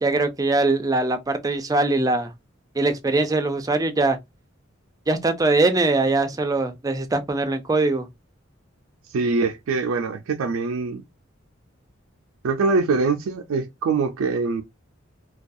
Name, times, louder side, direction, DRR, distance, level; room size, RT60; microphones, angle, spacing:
voice 1, 0.0-2.3 2.8-4.2 5.1-8.1, right 2 dB, 20° right, 0.4 m, -22 dB
voice 2, 9.1-11.0 12.4-14.6, right 4 dB, 85° right, 0.4 m, -23 dB
2.3 x 2.3 x 2.5 m
head